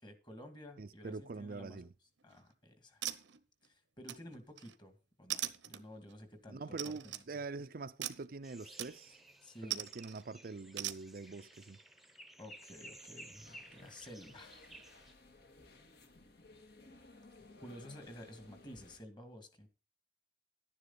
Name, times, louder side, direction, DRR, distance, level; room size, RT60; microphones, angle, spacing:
voice 1, 0.0-1.8 2.2-3.0 3.6-6.9 9.4-9.8 12.4-14.6 17.6-19.7, left 1 dB, 25° left, 2.2 m, -52 dB
voice 2, 0.8-1.9 6.5-9.2 9.6-11.8, right 3 dB, 55° right, 0.5 m, -44 dB
sound 1, 2.2-2.5 3.0-3.7 4.1-4.7 5.3-6.1 6.8-7.3 8.0-8.3 8.8-9.2 9.7-10.2 10.8-11.0, right 13 dB, 85° right, 0.9 m, -41 dB
sound 2, 8.4-15.1, right 1 dB, ahead, 0.9 m, -56 dB
sound 3, 12.5-19.0, left 2 dB, 60° left, 2.0 m, -59 dB
11.5 x 9.9 x 4.0 m
head